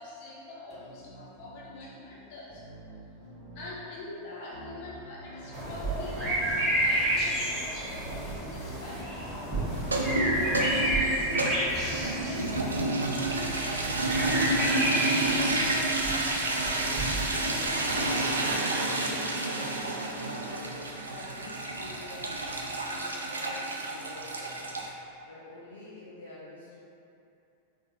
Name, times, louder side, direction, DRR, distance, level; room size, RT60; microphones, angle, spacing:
voice 1, 0.0-2.6 3.5-9.1 9.9-15.5 16.1-17.4, left 2 dB, 45° left, -6 dB, 0.9 m, -44 dB
sound 1, 0.7-15.7, right 2 dB, 10° left, 1.4 m, -45 dB
sound 2, 5.5-18.6, right 1 dB, 30° right, 1.2 m, -31 dB
sound 3, 9.8-24.9, right 2 dB, 75° right, 0.3 m, -30 dB
voice 2, 18.7-26.8, left 1 dB, 70° left, -8 dB, 0.6 m, -48 dB
3.8 x 2.4 x 3.7 m, 2.7 s
figure-of-eight pair, 90°, 0 cm